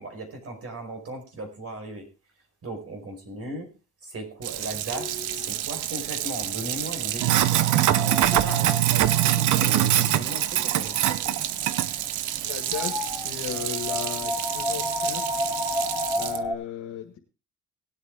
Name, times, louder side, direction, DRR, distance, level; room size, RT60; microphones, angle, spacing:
voice 1, 0.0-2.0 2.6-3.7 4.0-11.4, right 2 dB, 50° right, 4 dB, 4.7 m, -37 dB
sound 1, 4.4-16.5, left 1 dB, 15° right, 4.4 m, -34 dB
Sink (filling or washing), 4.4-16.4, right 13 dB, 75° right, 0.8 m, -25 dB
voice 2, 12.4-15.2 16.2-17.2, left 9 dB, 80° left, 3 dB, 1.9 m, -35 dB
18.5 x 8.5 x 3.6 m, 0.32 s
cardioid pair, 90°, 30 cm